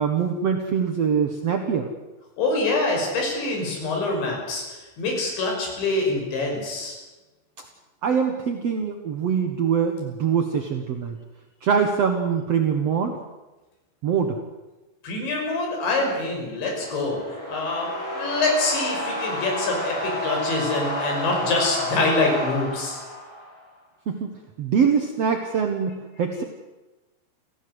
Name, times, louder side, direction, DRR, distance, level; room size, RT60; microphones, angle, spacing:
voice 1, 0.0-1.9 7.6-7.7 8.0-11.2 11.6-13.2 14.0-14.4 24.1-26.4, right 6 dB, 65° right, 4 dB, 1.6 m, -23 dB
voice 2, 2.4-7.0 15.0-17.2 17.5-23.0, left 2 dB, 85° left, 1 dB, 8.3 m, -25 dB
sound 1, 16.6-23.7, left 1 dB, 25° left, 7.6 m, -30 dB
29.0 x 16.0 x 8.1 m, 1.1 s
omnidirectional pair, 5.0 m